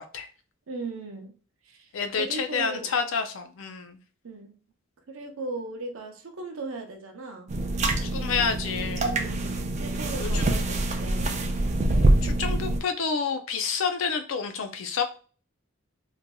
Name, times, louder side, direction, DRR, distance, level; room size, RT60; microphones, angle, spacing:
voice 1, 0.7-1.3 1.6-2.9 4.2-4.5 5.1-7.5 9.0-11.4, right 3 dB, 80° right, 4 dB, 0.6 m, -37 dB
voice 2, 1.9-4.0 8.0-9.1 10.2-10.8 12.2-15.0, left 5 dB, 70° left, 7 dB, 0.4 m, -29 dB
sound 1, 7.5-12.8, right 1 dB, 35° right, 0.3 m, -25 dB
3.1 x 2.5 x 2.2 m, 0.39 s
head